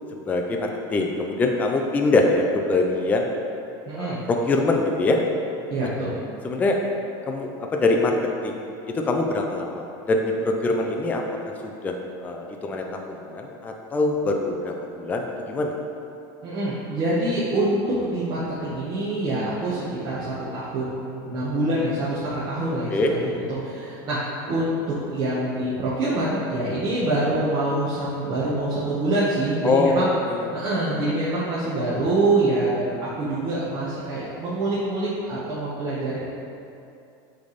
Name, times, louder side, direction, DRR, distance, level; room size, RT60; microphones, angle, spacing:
voice 1, 0.1-3.3 4.0-5.2 6.4-6.8 7.3-8.2 8.4-11.2 11.6-11.9 12.2-15.7 22.9-23.4 29.6-30.5, left 2 dB, 15° left, 2 dB, 0.4 m, -24 dB
voice 2, 3.9-4.2 5.7-6.2 16.4-24.2 24.4-30.1 30.5-36.2, right 2 dB, 35° right, -10 dB, 1.2 m, -25 dB
8.3 x 3.4 x 4.0 m, 2.6 s
supercardioid pair, 155°, 12 cm